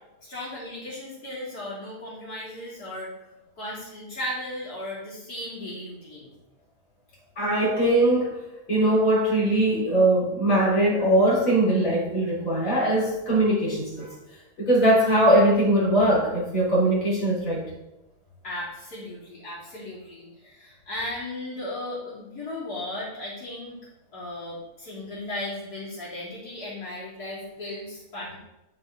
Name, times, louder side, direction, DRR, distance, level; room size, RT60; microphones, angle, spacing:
voice 1, 0.2-3.1 3.6-6.3 18.4-23.8 24.1-28.4, left 1 dB, 75° left, -8 dB, 3.9 m, -36 dB
voice 2, 7.4-8.4 8.7-14.1 14.6-17.7, right 1 dB, 55° left, -6 dB, 4.1 m, -21 dB
10.0 x 8.6 x 4.0 m, 0.94 s
omnidirectional pair, 1.7 m